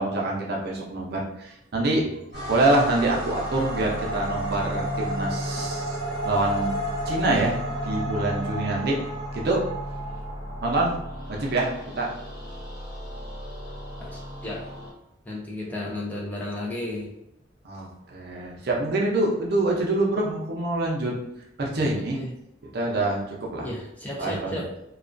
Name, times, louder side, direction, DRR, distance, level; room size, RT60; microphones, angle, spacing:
voice 1, 0.0-2.0 2.5-6.0 6.2-6.8 7.1-7.5 7.8-9.0 9.3-9.6 10.6-11.0 11.3-12.1 17.6-21.1 21.6-22.2 22.7-23.7 24.2-24.6, right 2 dB, 50° right, -2 dB, 0.5 m, -25 dB
sound 1, 2.3-14.9, equal, 60° left, 0.9 m, -32 dB
voice 2, 14.0-14.7 15.2-17.1 22.1-22.3 23.6-24.7, left 1 dB, 10° left, -4 dB, 0.4 m, -33 dB
2.3 x 2.2 x 2.4 m, 0.81 s
head